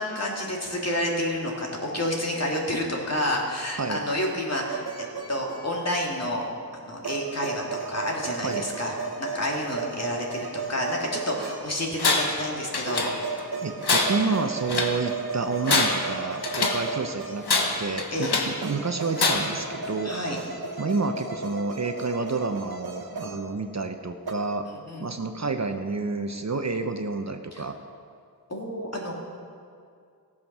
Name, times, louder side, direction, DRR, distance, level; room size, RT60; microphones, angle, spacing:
voice 1, 0.0-4.8 5.3-6.5 6.7-13.1 18.1-18.3 20.0-20.4 24.7-25.1 27.5-27.6 28.5-29.1, left 1 dB, 40° left, -1 dB, 2.3 m, -29 dB
sound 1, 4.7-6.1 7.0-11.9 12.9-17.8 18.6-23.9 24.3-24.4, right 4 dB, 70° right, 1.1 m, -35 dB
Tools, 12.0-12.4 12.7-13.4 13.8-15.0 15.5-16.9 17.4-18.6 19.2-19.7, left 3 dB, 80° left, 1.1 m, -25 dB
voice 2, 13.6-20.1 20.8-24.7 25.0-27.8, right 4 dB, 45° right, 7 dB, 0.7 m, -29 dB
15.5 x 7.3 x 6.0 m, 2.3 s
wide cardioid pair, 55°, 39 cm